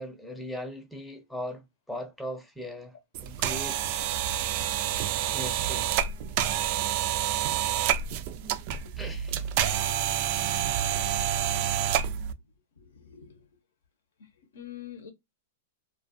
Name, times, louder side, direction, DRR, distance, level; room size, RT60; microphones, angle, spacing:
voice 1, 0.0-2.9 3.2-3.8 5.3-6.1 9.0-9.5 11.3-11.4, equal, 5° left, 0.5 m, -39 dB
sound 1, 3.2-12.3, right 10 dB, 50° right, 0.3 m, -28 dB
voice 2, 12.8-13.4 14.5-15.1, left 10 dB, 80° left, 0.7 m, -44 dB
2.3 x 2.2 x 2.5 m
hypercardioid pair, 125°, 0 cm